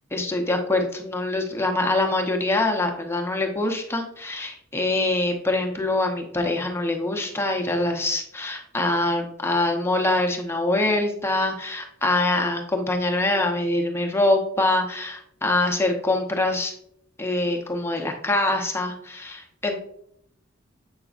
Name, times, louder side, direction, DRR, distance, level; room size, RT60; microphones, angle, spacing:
voice 1, 0.1-16.7 17.2-19.8, left 2 dB, 10° left, 3 dB, 0.9 m, -24 dB
7.9 x 5.7 x 2.4 m, 0.71 s
head